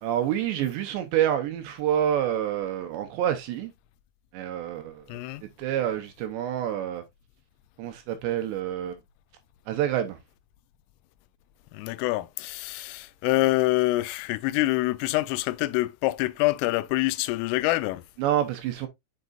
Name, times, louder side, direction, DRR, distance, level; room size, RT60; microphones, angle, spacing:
voice 1, 0.0-3.7 4.3-7.0 7.8-9.0 9.7-10.2 18.2-18.9, right 10 dB, 75° right, 2.8 m, -28 dB
voice 2, 5.1-5.4 11.7-18.0, left 19 dB, 90° left, 3.2 m, -26 dB
8.1 x 6.0 x 2.5 m
omnidirectional pair, 5.7 m